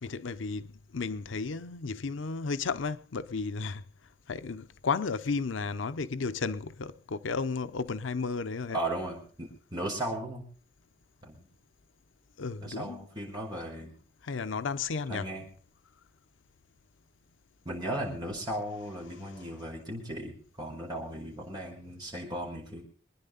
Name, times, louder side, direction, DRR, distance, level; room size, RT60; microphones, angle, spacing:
voice 1, 0.0-3.8 4.3-8.8 12.4-13.1 14.2-15.3, left 4 dB, 85° left, 0.6 m, -33 dB
voice 2, 8.7-10.5 11.2-11.4 12.6-13.9 15.1-15.5 17.6-22.8, right 1 dB, 20° right, 4.8 m, -36 dB
24.5 x 10.0 x 4.0 m
head